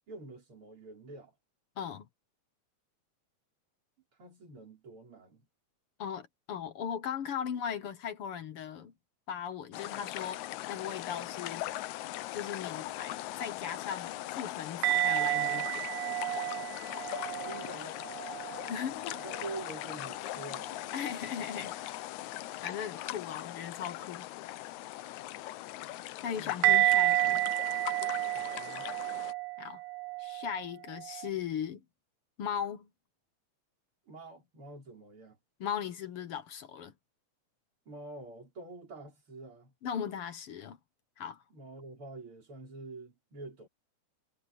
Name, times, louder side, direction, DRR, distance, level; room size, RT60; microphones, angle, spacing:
voice 1, 0.1-1.3 4.2-5.5 17.4-18.0 19.1-20.7 26.3-27.0 28.3-28.9 34.1-35.4 37.9-39.7 41.5-43.7, right 2 dB, 45° right, 6.5 m, -46 dB
voice 2, 1.8-2.1 6.0-8.9 9.3-10.4 10.7-11.7 12.3-15.8 18.4-19.2 20.9-22.0 22.6-24.3 26.2-27.6 29.6-29.8 30.2-31.8 32.4-32.9 35.6-36.9 39.8-40.8 41.2-41.4, left 8 dB, 60° left, 1.8 m, -38 dB
sound 1, 9.7-29.3, left 16 dB, 80° left, 2.0 m, -40 dB
sound 2, 14.8-18.8 19.1-19.7 26.6-31.3, right 17 dB, 85° right, 2.2 m, -31 dB
omnidirectional pair, 3.4 m